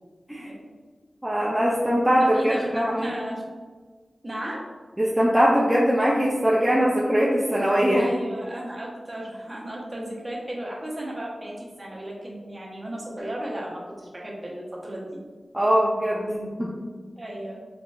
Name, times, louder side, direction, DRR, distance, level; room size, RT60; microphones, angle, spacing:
voice 1, 1.2-3.1 5.0-8.1 15.5-16.7, equal, 10° right, -5 dB, 0.5 m, -21 dB
voice 2, 2.2-3.4 4.2-4.7 7.9-15.2 17.2-17.6, right 1 dB, 25° right, -3 dB, 0.9 m, -34 dB
4.0 x 3.1 x 2.3 m, 1.4 s
wide cardioid pair, 95°, 0 cm